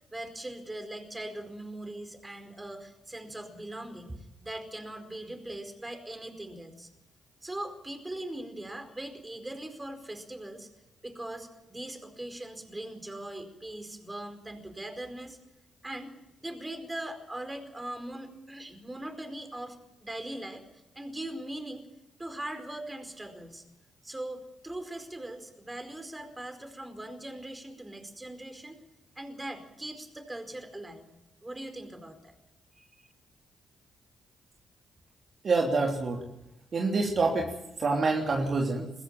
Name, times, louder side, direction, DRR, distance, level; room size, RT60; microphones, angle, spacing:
voice 1, 0.0-6.9 7.4-10.7 11.0-15.4 15.8-16.2 16.4-19.8 20.0-20.6 20.9-21.9 22.2-23.6 24.0-28.8 29.1-31.1 31.4-32.3 32.8-33.1, right 1 dB, 20° right, 7 dB, 4.8 m, -40 dB
voice 2, 35.4-36.2 36.7-37.5 37.8-38.9, right 3 dB, 50° right, 1 dB, 3.2 m, -26 dB
22.5 x 15.0 x 9.1 m, 0.88 s
hypercardioid pair, 40°, 0 cm